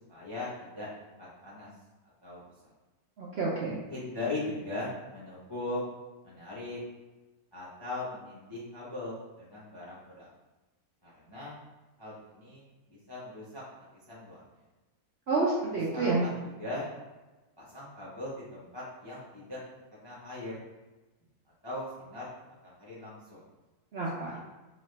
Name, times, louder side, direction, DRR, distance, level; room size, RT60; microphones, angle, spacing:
voice 1, 0.1-0.9 1.2-1.7 2.2-2.4 3.9-5.8 6.2-6.8 7.5-10.3 11.0-11.5 12.0-13.6 14.1-14.4 15.9-16.9 17.6-19.6 19.9-20.6 21.6-22.3 22.6-23.4 24.2-24.4, left 2 dB, 25° left, -8 dB, 0.5 m, -39 dB
voice 2, 3.2-3.8 15.3-16.2 23.9-24.4, right 3 dB, 60° right, -5 dB, 0.7 m, -29 dB
3.9 x 2.4 x 3.2 m, 1.1 s
omnidirectional pair, 1.6 m